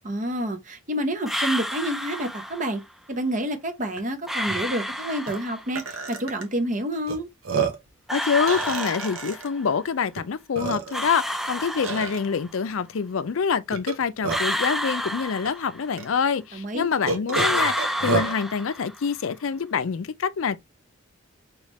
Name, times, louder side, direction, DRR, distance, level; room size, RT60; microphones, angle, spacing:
voice 1, 0.0-2.8 3.1-7.3 16.5-16.8, right 1 dB, 35° right, 0.8 m, -28 dB
sound 1, 1.3-2.7 4.3-5.8 8.1-9.6 10.9-12.5 14.3-16.0 17.3-19.1, equal, ahead, 0.4 m, -29 dB
Burping eructation, 4.0-4.1 4.4-4.6 5.3-5.4 5.7-6.4 7.1-7.2 7.4-7.9 8.5-9.5 10.2-10.3 10.5-11.1 11.8-12.2 13.7-14.6 15.4-15.5 16.0-16.1 17.1-18.3, right 4 dB, 85° right, 1.1 m, -29 dB
voice 2, 8.1-20.6, left 6 dB, 75° left, 0.5 m, -26 dB
5.0 x 3.1 x 3.1 m
head